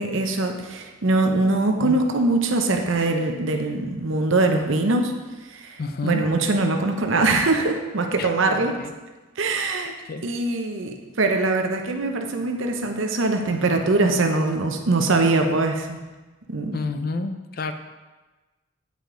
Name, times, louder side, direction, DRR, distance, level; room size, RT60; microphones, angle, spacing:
voice 1, 0.0-5.1 5.5-8.8 9.4-9.9 10.2-16.0 16.5-16.8, right 2 dB, 70° right, 4 dB, 0.8 m, -22 dB
voice 2, 5.8-6.2 8.2-8.9 10.1-10.3 16.7-17.7, left 3 dB, 45° left, 8 dB, 0.5 m, -30 dB
9.1 x 5.1 x 3.8 m, 1.2 s
head